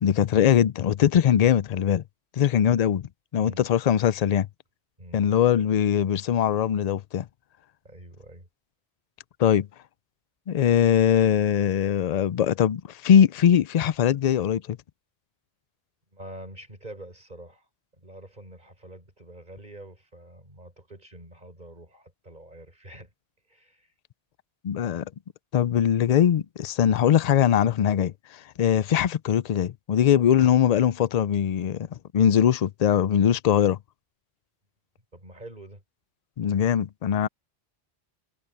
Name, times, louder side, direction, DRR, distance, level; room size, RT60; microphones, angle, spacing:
voice 1, 0.0-2.0 2.4-4.5 5.1-7.3 9.4-9.7 10.5-14.8 24.6-25.0 25.5-31.9 32.1-33.8 36.4-37.3, left 9 dB, 55° left, 0.5 m, -21 dB
voice 2, 3.3-3.7 5.0-5.3 7.8-8.5 16.1-17.7 17.9-23.1 23.5-23.9 35.1-35.8, right 1 dB, 45° right, 5.6 m, -45 dB
omnidirectional pair, 1.1 m